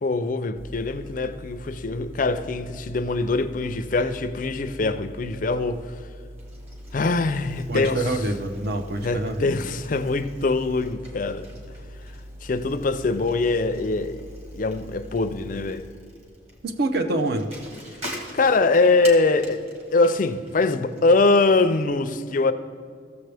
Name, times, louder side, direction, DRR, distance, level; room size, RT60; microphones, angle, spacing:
voice 1, 0.0-5.8 6.9-8.0 9.0-11.5 12.4-15.9 18.3-19.6 19.9-22.5, left 3 dB, 45° left, 0.4 m, -23 dB
sound 1, 0.6-15.7, equal, 15° right, 0.4 m, -42 dB
Bicycle, 6.4-21.9, equal, 35° right, 1.6 m, -45 dB
voice 2, 7.7-9.5 16.6-17.5, right 2 dB, 60° right, 0.7 m, -26 dB
14.5 x 6.8 x 3.4 m
head